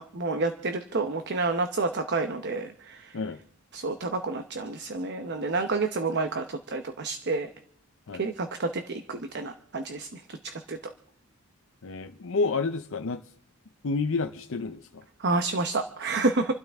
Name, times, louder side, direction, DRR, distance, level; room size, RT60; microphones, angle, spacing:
voice 1, 0.0-3.2 3.7-7.5 8.1-10.8 15.2-16.5, right 3 dB, 50° right, 0.9 m, -29 dB
voice 2, 11.8-13.2 13.8-15.0, left 4 dB, 60° left, 0.6 m, -29 dB
27.5 x 12.5 x 3.5 m
head